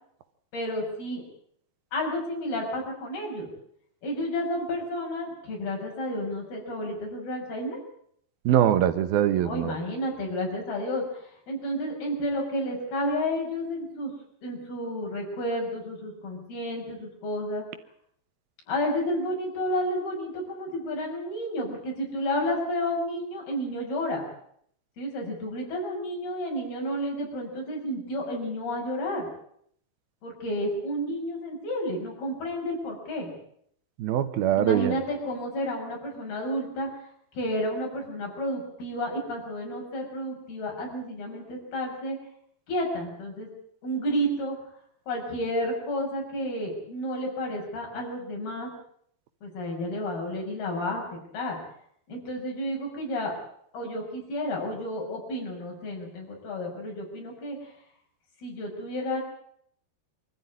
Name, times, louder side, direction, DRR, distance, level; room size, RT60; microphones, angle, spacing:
voice 1, 0.5-1.2 1.9-3.5 4.0-7.8 9.4-14.1 14.4-17.6 18.7-24.2 25.0-29.3 30.2-33.3 34.6-36.9 37.3-42.2 42.7-43.5 43.8-44.6 45.1-48.7 49.4-51.6 52.1-53.3 53.7-57.7 58.4-59.2, equal, 90° left, 0 dB, 8.0 m, -31 dB
voice 2, 8.4-9.7 34.0-35.0, right 11 dB, 80° right, 11 dB, 3.1 m, -23 dB
25.0 x 14.0 x 9.6 m, 0.67 s
omnidirectional pair, 4.3 m